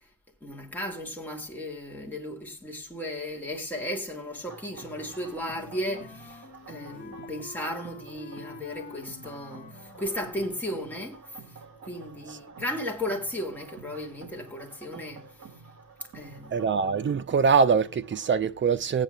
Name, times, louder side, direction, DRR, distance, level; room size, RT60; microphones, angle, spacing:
voice 1, 0.4-6.4 6.7-11.3 11.8-15.3 16.1-16.7, left 1 dB, 5° left, 2.8 m, -35 dB
sound 1, 4.5-18.5, right 4 dB, 50° right, 3.4 m, -49 dB
Wind instrument woodwind instrument, 4.7-10.6, left 3 dB, 25° left, 2.3 m, -47 dB
voice 2, 16.5-19.0, right 5 dB, 35° right, 0.8 m, -23 dB
19.0 x 8.7 x 2.4 m
cardioid pair, 130°, 33 cm